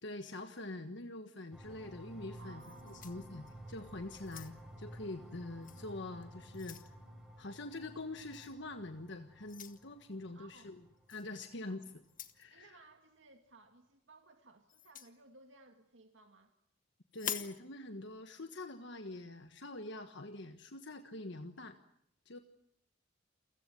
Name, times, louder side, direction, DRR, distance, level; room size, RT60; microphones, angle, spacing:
voice 1, 0.0-6.9 7.4-10.8 11.1-11.8 12.3-12.8 17.1-21.8 22.2-22.4, left 2 dB, 65° left, 7 dB, 1.5 m, -45 dB
sound 1, 1.5-12.0, equal, 5° right, 4.0 m, -54 dB
voice 2, 2.4-3.2 10.3-10.7 11.7-11.9 12.5-16.5, right 3 dB, 70° right, 5 dB, 2.3 m, -60 dB
sound 2, 2.6-3.7 4.2-4.8 5.6-5.8 6.2-6.9 8.3-8.6 9.5-9.8 11.1-11.3 12.0-12.5 14.7-15.1 17.1-17.6, left 10 dB, 45° left, 1.6 m, -45 dB
29.0 x 16.0 x 9.8 m, 0.72 s
head